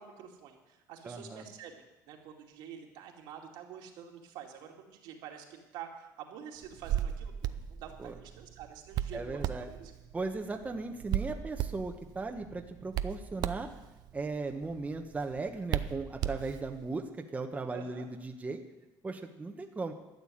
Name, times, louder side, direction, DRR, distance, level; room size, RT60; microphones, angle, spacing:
voice 1, 0.0-1.7 2.1-9.9 17.7-18.1, right 8 dB, 80° right, 1 dB, 2.4 m, -48 dB
voice 2, 1.0-1.4 8.0-8.1 9.1-9.7 10.1-13.7 14.1-18.6 19.0-19.9, right 3 dB, 20° right, 4 dB, 1.1 m, -37 dB
Hands, 6.6-16.9, right 11 dB, 65° right, 0.7 m, -37 dB
12.5 x 6.9 x 9.9 m, 0.99 s
cardioid pair, 115°, 8 cm